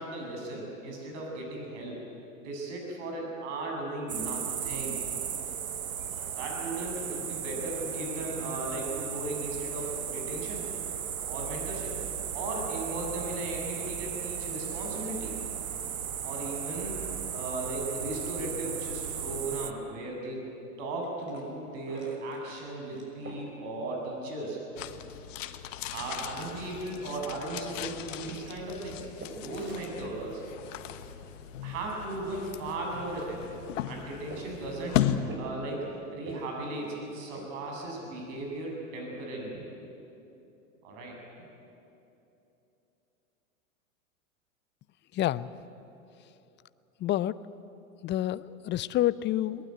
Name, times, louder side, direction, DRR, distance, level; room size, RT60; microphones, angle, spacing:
voice 1, 0.0-2.0 2.4-5.0 6.3-10.6 11.3-12.0 12.3-15.4 16.2-17.0 17.3-20.4 20.8-24.6 25.9-30.4 31.6-33.6 33.9-39.6 40.8-41.2, right 2 dB, 60° right, 0 dB, 7.4 m, -36 dB
sound 1, 4.1-19.7, right 8 dB, 85° right, 1.0 m, -36 dB
sound 2, 20.8-38.6, right 1 dB, 30° right, 6.0 m, -50 dB
sound 3, 24.8-35.2, left 12 dB, 65° left, 1.3 m, -36 dB
voice 2, 45.1-45.5 47.0-47.4 48.0-49.7, left 13 dB, 25° left, 18 dB, 0.6 m, -28 dB
22.0 x 19.5 x 9.2 m, 2.9 s
hypercardioid pair, 90°, 41 cm